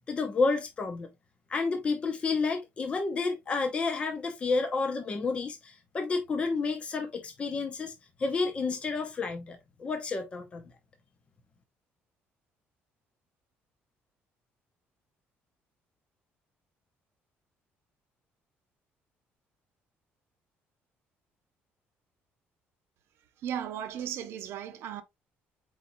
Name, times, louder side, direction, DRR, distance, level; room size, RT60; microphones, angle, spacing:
voice 1, 0.1-1.1 1.5-7.9 8.2-10.6, left 4 dB, 25° left, 0.7 m, -30 dB
voice 2, 23.4-25.0, right 9 dB, 65° right, 0.8 m, -36 dB
4.6 x 4.1 x 2.6 m
cardioid pair, 160°, 4 cm